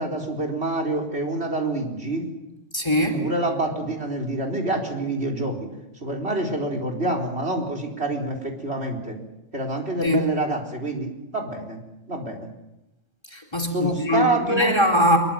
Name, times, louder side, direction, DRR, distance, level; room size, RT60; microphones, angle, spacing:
voice 1, 0.0-2.3 3.0-5.7 6.0-9.2 9.5-11.8 12.1-12.5 13.7-14.7, right 2 dB, 55° right, 4 dB, 4.6 m, -27 dB
voice 2, 2.7-3.2 10.0-10.3 13.3-15.2, equal, 20° left, 4 dB, 4.1 m, -21 dB
25.0 x 23.0 x 7.6 m, 0.91 s
omnidirectional pair, 1.3 m